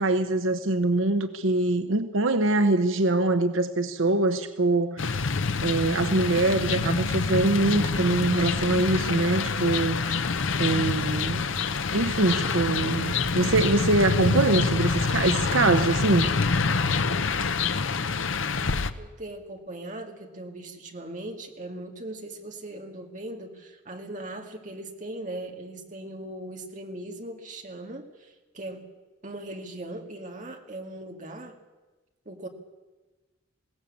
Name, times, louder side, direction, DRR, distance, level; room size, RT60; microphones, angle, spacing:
voice 1, 0.0-5.2 5.6-10.1 10.6-11.4 11.9-16.3, right 2 dB, 85° right, 9 dB, 1.0 m, -24 dB
sound 1, 5.0-18.9, left 4 dB, 75° left, 0.9 m, -26 dB
voice 2, 19.0-28.9 29.2-31.6 32.3-32.5, right 1 dB, 40° right, 3 dB, 2.2 m, -39 dB
20.5 x 17.0 x 8.7 m, 1.2 s
head